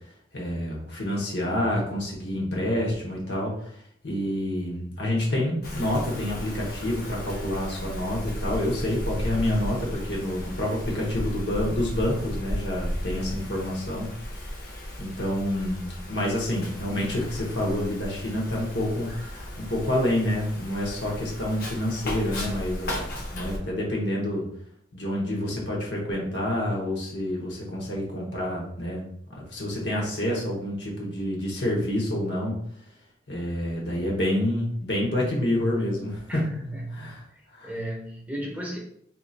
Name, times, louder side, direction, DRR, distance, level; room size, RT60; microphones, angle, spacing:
voice 1, 0.3-3.7 4.0-14.1 15.0-24.4 24.9-32.5 33.3-36.4 36.9-37.2 37.5-37.7, left 1 dB, 75° left, -3 dB, 1.1 m, -28 dB
Wind, 5.6-23.6, equal, 50° left, 0.8 m, -35 dB
voice 2, 36.7-37.1 37.6-38.8, right 1 dB, 10° right, -2 dB, 0.5 m, -34 dB
2.9 x 2.4 x 3.9 m, 0.68 s
head